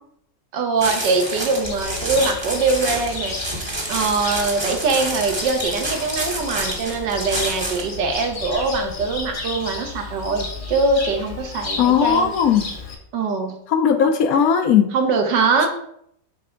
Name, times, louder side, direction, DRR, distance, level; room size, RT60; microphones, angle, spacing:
voice 1, 0.5-12.3 13.1-13.6 14.9-15.7, right 4 dB, 70° right, 4 dB, 1.5 m, -22 dB
sound 1, 0.8-7.9, right 1 dB, 20° right, 0.8 m, -29 dB
Cricket, 1.6-12.9, left 3 dB, 35° left, 0.9 m, -33 dB
voice 2, 11.8-12.6 13.7-14.9, left 7 dB, 70° left, 6 dB, 0.9 m, -17 dB
5.8 x 3.4 x 5.0 m, 0.70 s
omnidirectional pair, 2.0 m